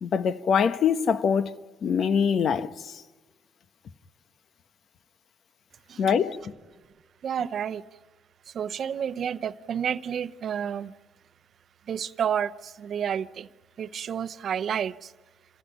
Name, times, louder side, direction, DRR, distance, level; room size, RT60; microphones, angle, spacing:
voice 1, 0.0-3.0 6.0-6.5, left 7 dB, 55° left, 1.2 m, -24 dB
voice 2, 7.2-7.8 8.5-10.9 11.9-13.5 13.8-15.1, right 8 dB, 55° right, 0.8 m, -30 dB
27.5 x 15.0 x 9.3 m
cardioid pair, 100°, 0 cm